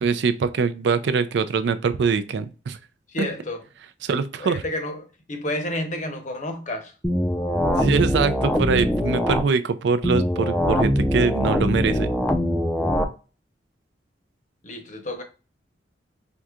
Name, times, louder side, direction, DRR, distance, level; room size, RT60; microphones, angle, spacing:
voice 1, 0.0-2.8 4.0-4.6 7.8-12.1, right 5 dB, 70° right, 0.4 m, -23 dB
voice 2, 3.1-3.6 4.4-6.9 14.6-15.2, left 1 dB, 45° left, 0.7 m, -30 dB
sound 1, 7.0-9.4 10.0-13.0, left 1 dB, 10° left, 0.4 m, -22 dB
4.5 x 2.7 x 2.3 m
head